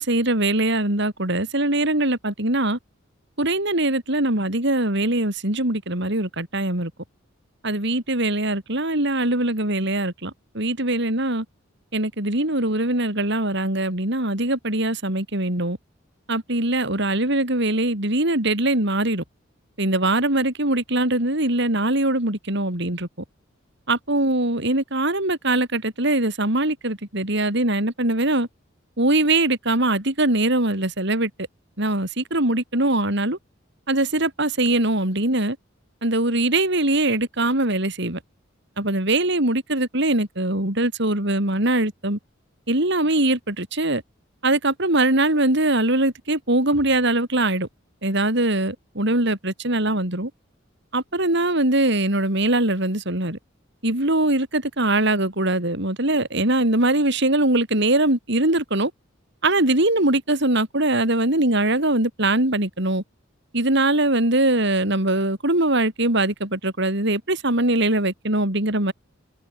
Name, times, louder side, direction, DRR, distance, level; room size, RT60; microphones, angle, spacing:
voice 1, 0.0-2.8 3.4-6.9 7.6-11.5 11.9-15.8 16.3-19.2 19.8-23.1 23.9-28.5 29.0-31.3 31.8-33.4 33.9-35.6 36.0-38.2 38.8-42.2 42.7-44.0 44.4-47.7 48.0-50.3 50.9-53.4 53.8-58.9 59.4-63.0 63.5-68.9, right 2 dB, 60° right, 5.3 m, -22 dB
head